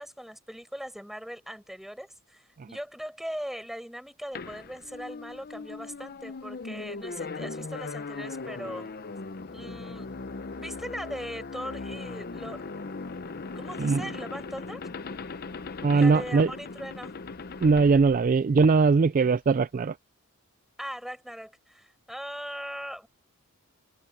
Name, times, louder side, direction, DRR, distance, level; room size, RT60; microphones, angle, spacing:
voice 1, 0.0-8.9 9.5-10.1 10.6-12.6 13.5-14.9 15.9-17.1 20.8-23.1, equal, ahead, 5.7 m, -39 dB
sound 1, 4.3-18.9, left 3 dB, 45° left, 0.7 m, -39 dB
voice 2, 15.8-16.5 17.6-20.0, right 4 dB, 40° right, 0.3 m, -21 dB
head